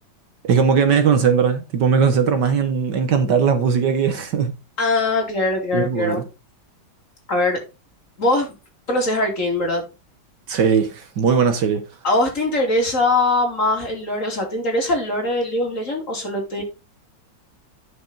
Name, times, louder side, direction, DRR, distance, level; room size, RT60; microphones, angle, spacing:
voice 1, 0.4-4.5 5.7-6.2 10.5-11.9, right 6 dB, 65° right, 1.6 m, -19 dB
voice 2, 4.8-6.2 7.3-7.6 8.2-8.5 8.9-9.8 12.0-16.6, left 2 dB, 40° left, 3.1 m, -21 dB
10.5 x 6.0 x 4.0 m
omnidirectional pair, 2.2 m